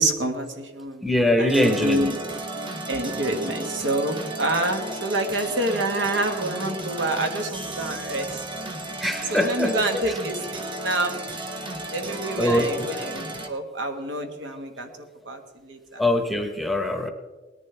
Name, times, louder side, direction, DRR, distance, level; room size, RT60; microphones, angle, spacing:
voice 1, 0.0-2.2 2.9-8.4 9.3-11.1 11.9-14.9 15.2-16.0, right 1 dB, 70° right, 5 dB, 1.6 m, -27 dB
voice 2, 1.0-2.1 9.0-9.8 12.4-12.9 16.0-17.1, left 1 dB, ahead, 5 dB, 1.0 m, -22 dB
sound 1, 1.5-13.5, right 2 dB, 25° right, 1.2 m, -34 dB
19.5 x 10.5 x 3.4 m, 1.3 s
head